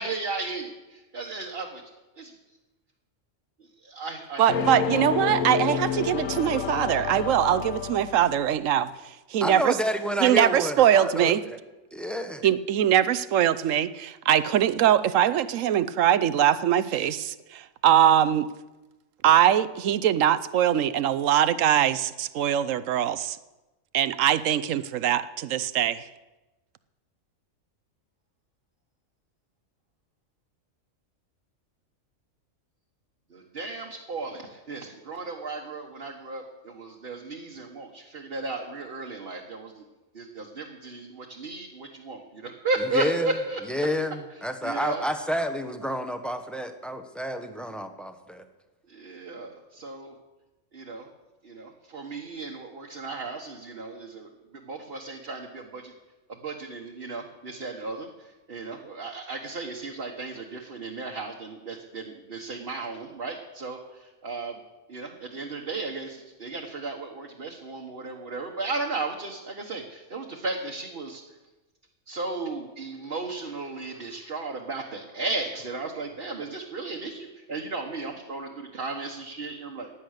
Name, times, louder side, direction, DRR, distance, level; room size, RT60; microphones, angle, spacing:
voice 1, 0.0-1.8 2.2-2.3 3.8-4.4 33.3-39.8 40.1-43.6 44.6-45.0 48.9-50.1 50.7-51.1 51.4-54.3 54.6-55.9 56.4-64.6 64.9-71.2 72.1-79.9, right 3 dB, 45° right, 0 dB, 1.5 m, -35 dB
voice 2, 4.4-9.8 10.2-11.4 12.4-18.5 19.2-23.4 23.9-26.1, right 10 dB, 75° right, 15 dB, 1.0 m, -22 dB
sound 1, 4.5-8.6, left 7 dB, 75° left, 1.3 m, -29 dB
voice 3, 9.4-11.6 11.9-12.4 42.8-43.3 43.7-48.4, equal, ahead, 6 dB, 0.9 m, -30 dB
16.0 x 10.0 x 6.6 m, 1.1 s
omnidirectional pair, 1.4 m